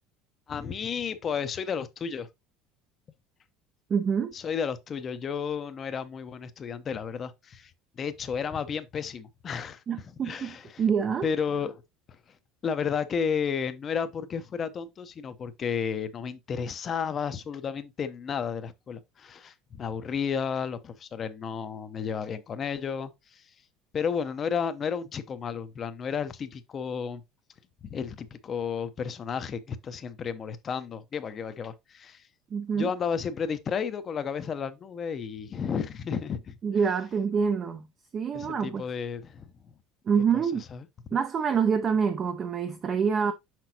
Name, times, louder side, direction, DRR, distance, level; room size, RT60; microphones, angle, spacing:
voice 1, 0.5-2.3 4.3-10.8 11.2-11.8 12.1-12.4 12.6-23.6 23.9-27.2 27.8-32.3 32.7-36.6 38.3-39.7 40.3-40.9, left 6 dB, 25° left, 0.6 m, -32 dB
voice 2, 3.9-4.3 9.9-10.5 10.8-11.3 32.5-32.9 36.6-37.9 38.1-38.8 40.1-40.6 41.1-43.3, right 6 dB, 25° right, 0.5 m, -26 dB
5.9 x 5.8 x 2.8 m
cardioid pair, 160°, 0 cm